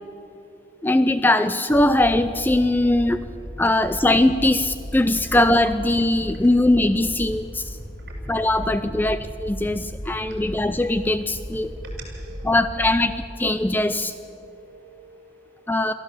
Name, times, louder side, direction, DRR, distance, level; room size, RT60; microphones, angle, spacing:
voice 1, 0.8-3.2 3.6-7.8 8.3-11.7 12.4-13.1 13.4-14.1 15.7-15.9, left 1 dB, 10° left, 12 dB, 0.4 m, -20 dB
sound 1, 1.7-12.9, equal, 10° right, 6.4 m, -36 dB
voice 2, 11.6-12.9 13.5-13.9 14.4-15.8, equal, 50° right, 0 dB, 6.4 m, -46 dB
22.5 x 15.0 x 8.0 m, 2.9 s
head